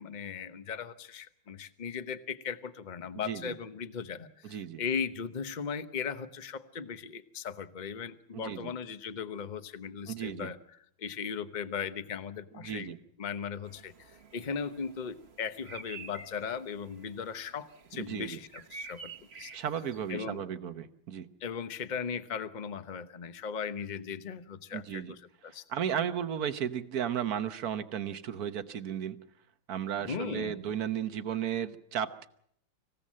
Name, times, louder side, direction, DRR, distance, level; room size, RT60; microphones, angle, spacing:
voice 1, 0.0-10.6 11.0-12.9 13.2-13.9 14.3-19.5 20.1-20.4 21.4-25.6 30.0-30.6, left 6 dB, 35° left, 11 dB, 0.7 m, -38 dB
voice 2, 3.1-3.6 4.4-4.8 8.3-8.7 10.1-10.5 12.5-13.0 17.9-18.4 19.5-21.3 24.7-25.1 25.7-29.2 29.7-32.3, right 9 dB, 55° right, 11 dB, 1.4 m, -34 dB
sound 1, 13.6-20.1, right 4 dB, 40° right, 1.2 m, -50 dB
26.5 x 16.0 x 7.5 m, 0.70 s
omnidirectional pair, 2.1 m